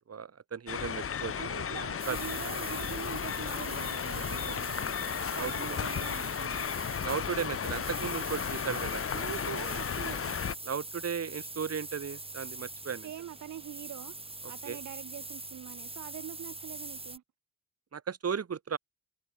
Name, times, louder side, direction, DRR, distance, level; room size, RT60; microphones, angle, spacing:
voice 1, 0.1-1.3 2.1-2.2 5.3-5.5 7.0-9.0 10.6-13.1 14.7-14.8 17.9-18.8, right 7 dB, 50° right, 5.0 m, -35 dB
sound 1, 0.7-10.5, left 7 dB, 45° left, 1.3 m, -34 dB
voice 2, 0.8-6.9 9.1-10.4 13.0-17.2, right 11 dB, 70° right, 2.8 m, -44 dB
sound 2, 2.0-17.2, right 2 dB, 20° right, 4.0 m, -43 dB
supercardioid pair, 55°, 31 cm